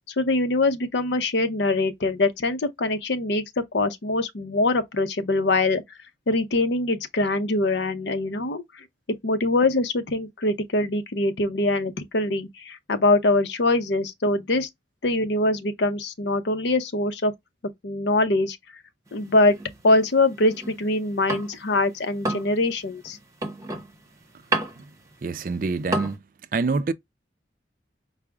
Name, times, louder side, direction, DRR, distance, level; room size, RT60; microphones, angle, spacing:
voice 1, 0.2-3.4 3.7-5.8 6.3-8.8 9.2-14.7 15.0-17.3 17.8-18.6 19.1-19.6 19.8-23.2, left 2 dB, 80° left, 0.7 m, -23 dB
sound 1, 19.1-21.8 22.1-26.2, right 2 dB, 15° right, 0.7 m, -31 dB
voice 2, 25.2-26.2 26.5-26.9, right 4 dB, 50° right, 0.3 m, -26 dB
4.8 x 2.0 x 3.4 m
head